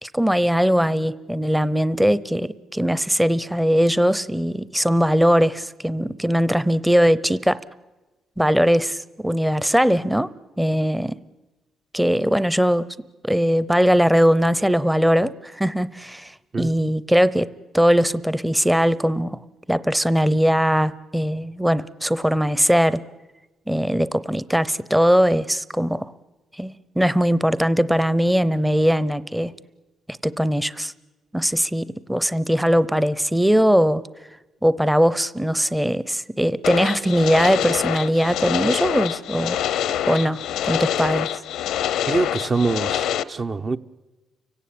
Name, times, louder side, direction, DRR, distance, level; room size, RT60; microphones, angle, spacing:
voice 1, 0.0-7.6 8.4-10.3 10.6-11.2 11.9-12.9 13.2-19.4 19.7-23.0 23.7-26.1 26.6-29.5 30.1-30.9 31.3-34.0 34.6-39.6 40.1-41.3, equal, 5° right, 17 dB, 0.7 m, -20 dB
sound 1, 36.6-43.2, left 10 dB, 85° left, 0.8 m, -25 dB
voice 2, 42.1-43.8, right 3 dB, 35° right, 8 dB, 0.8 m, -24 dB
30.0 x 17.0 x 8.7 m, 1.1 s
cardioid pair, 90°, 0 cm